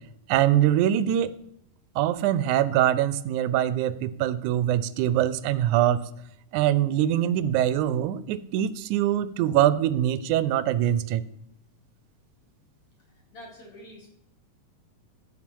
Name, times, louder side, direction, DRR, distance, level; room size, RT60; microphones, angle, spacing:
voice 1, 0.3-1.4 2.0-6.0 6.5-11.2, right 11 dB, 90° right, 16 dB, 2.0 m, -23 dB
voice 2, 13.3-14.1, equal, 50° left, -1 dB, 3.4 m, -46 dB
14.5 x 6.0 x 4.5 m, 0.79 s
omnidirectional pair, 3.4 m